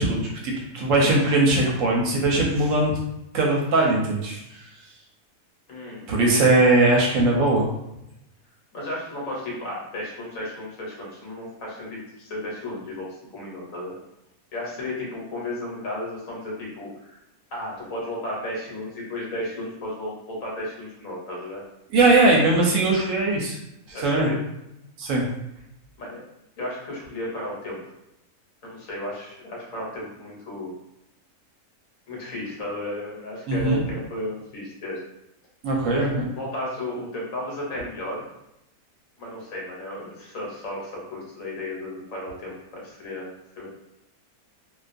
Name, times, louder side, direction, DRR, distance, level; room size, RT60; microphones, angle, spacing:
voice 1, 0.0-3.0 3.3-4.7 6.1-7.7 21.9-23.6 23.9-24.3 25.0-25.2 33.5-33.8 35.6-36.1, right 2 dB, 70° right, -2 dB, 0.9 m, -20 dB
voice 2, 5.7-6.1 8.7-13.1 13.3-13.9 14.5-17.2 17.5-21.6 23.9-24.4 26.0-26.2 26.6-27.8 28.6-30.7 32.1-35.0 35.9-38.2 39.2-43.3 43.6-43.7, left 1 dB, 70° left, -4 dB, 1.2 m, -34 dB
2.4 x 2.3 x 2.5 m, 0.87 s
omnidirectional pair, 1.5 m